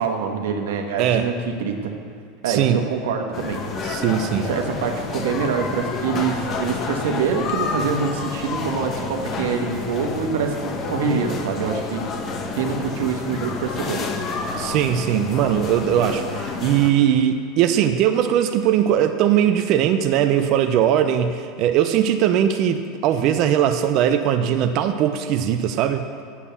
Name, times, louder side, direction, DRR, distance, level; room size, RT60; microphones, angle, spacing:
voice 1, 0.0-1.9 2.4-3.6 4.3-12.0 12.5-14.0, right 5 dB, 85° right, 3 dB, 1.2 m, -25 dB
voice 2, 2.5-2.8 3.8-4.4 14.6-26.0, right 10 dB, 50° right, 7 dB, 0.5 m, -20 dB
sound 1, 3.3-16.9, left 4 dB, 40° left, 1.1 m, -29 dB
8.4 x 7.2 x 7.0 m, 2.2 s
supercardioid pair, 125°, 0 cm